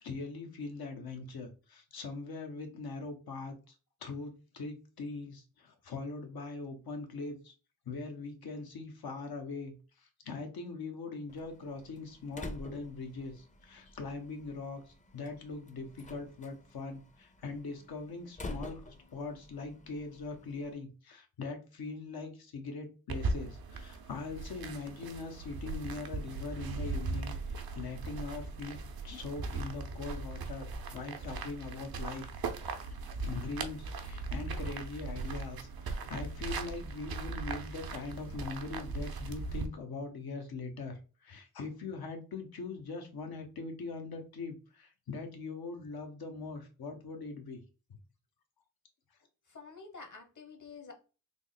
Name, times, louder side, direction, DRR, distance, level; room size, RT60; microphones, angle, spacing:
voice 1, 0.0-3.7 4.0-7.5 7.9-32.3 32.7-47.6, left 3 dB, 75° left, 0.9 m, -42 dB
Slam, 11.3-20.7, left 1 dB, 20° left, 0.6 m, -49 dB
sound 1, 23.1-39.7, right 3 dB, 75° right, 0.6 m, -39 dB
voice 2, 49.5-50.9, left 4 dB, 55° left, 1.2 m, -49 dB
3.5 x 2.0 x 3.9 m
cardioid pair, 40°, 37 cm